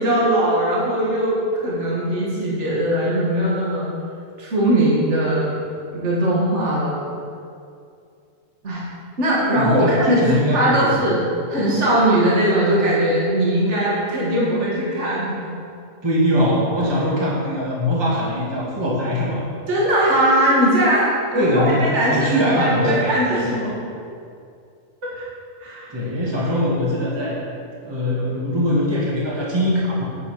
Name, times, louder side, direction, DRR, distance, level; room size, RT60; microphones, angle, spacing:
voice 1, 0.0-3.9 4.4-5.6 5.9-7.1 8.6-8.8 9.2-15.5 19.7-23.8 25.0-25.2 25.6-25.9, right 1 dB, 45° right, -6 dB, 2.4 m, -20 dB
voice 2, 9.6-11.1 16.0-19.4 21.3-23.0 23.4-23.6 25.9-27.4 27.8-30.0, left 1 dB, 15° right, -6 dB, 2.0 m, -21 dB
9.9 x 8.2 x 5.0 m, 2.4 s
omnidirectional pair, 1.7 m